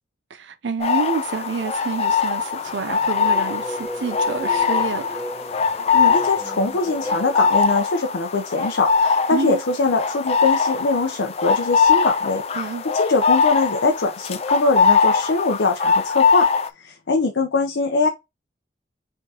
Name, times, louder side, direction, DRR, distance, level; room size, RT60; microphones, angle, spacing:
voice 1, 0.3-5.2 9.3-9.6 12.5-12.8, right 4 dB, 80° right, 0.5 m, -28 dB
sound 1, 0.8-16.7, left 5 dB, 35° left, 0.3 m, -21 dB
sound 2, 2.7-7.5, equal, 10° right, 1.6 m, -35 dB
voice 2, 5.9-16.5 16.8-18.1, left 3 dB, 85° left, 0.7 m, -22 dB
4.5 x 3.7 x 2.8 m
head